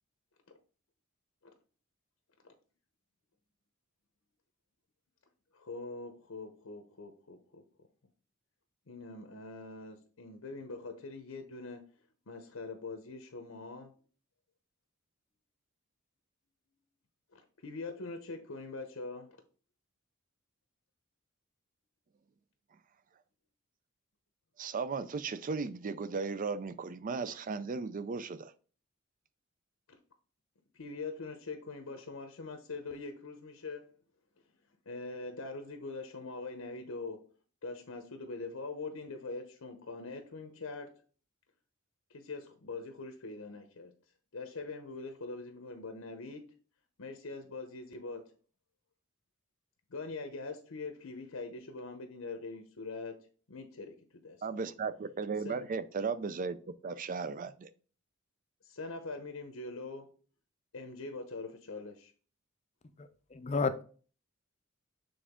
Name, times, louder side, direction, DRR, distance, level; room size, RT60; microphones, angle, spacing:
voice 1, 5.5-7.6 8.9-11.8 12.3-13.9 17.3-19.3 29.9-30.0 30.7-33.9 34.9-37.3 37.6-40.9 42.1-43.9 44.3-46.5 47.0-48.2 49.9-53.1 53.5-54.4 55.4-55.7 58.6-60.1 60.7-62.1, left 3 dB, 80° left, 0.8 m, -43 dB
voice 2, 24.6-28.5 54.4-57.7, right 4 dB, 40° right, 0.4 m, -36 dB
voice 3, 63.0-63.8, left 4 dB, 30° left, 0.5 m, -32 dB
7.1 x 3.6 x 3.6 m
head